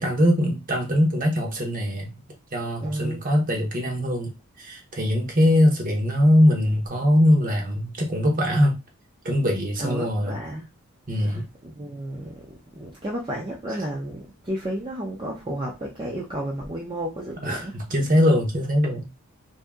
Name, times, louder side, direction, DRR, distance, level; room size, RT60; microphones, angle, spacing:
voice 1, 0.0-2.1 2.5-8.8 9.2-10.4 11.1-11.5 17.4-19.1, equal, 40° right, 0.9 m, -22 dB
voice 2, 2.8-3.2 9.8-10.7 11.2-17.8, right 1 dB, 20° right, 0.6 m, -32 dB
2.7 x 2.7 x 3.5 m
head